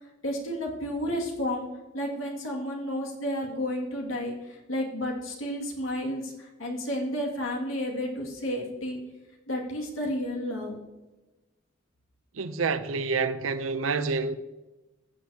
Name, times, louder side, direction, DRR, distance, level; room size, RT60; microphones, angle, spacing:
voice 1, 0.2-1.7 1.9-9.0 9.5-10.8, equal, 85° left, 2.2 m, -31 dB
voice 2, 12.4-14.4, right 4 dB, 85° right, 0.7 m, -28 dB
15.0 x 7.9 x 2.9 m
head